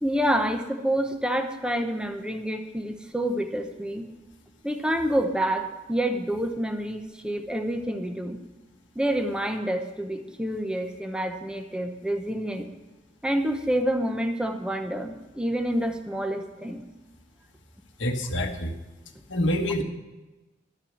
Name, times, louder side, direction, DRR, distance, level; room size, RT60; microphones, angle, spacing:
voice 1, 0.0-4.1 4.6-8.4 8.9-12.7 13.2-16.8, right 1 dB, 5° right, 5 dB, 0.9 m, -28 dB
voice 2, 18.0-18.8 19.3-19.8, left 1 dB, 85° left, 4 dB, 1.5 m, -26 dB
13.0 x 6.7 x 7.3 m, 1.1 s
head